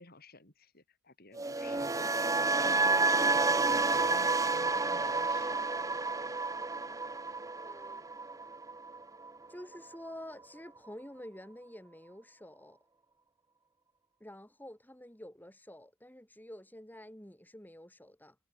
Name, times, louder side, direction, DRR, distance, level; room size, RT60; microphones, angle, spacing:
voice 1, 0.0-2.3 2.6-5.9, left 2 dB, 40° left, 3.8 m, -54 dB
sound 1, 1.3-9.5 9.7-10.1, right 3 dB, 15° right, 0.7 m, -30 dB
voice 2, 7.6-8.0 9.5-12.8 14.2-18.4, left 1 dB, 10° left, 4.2 m, -49 dB
head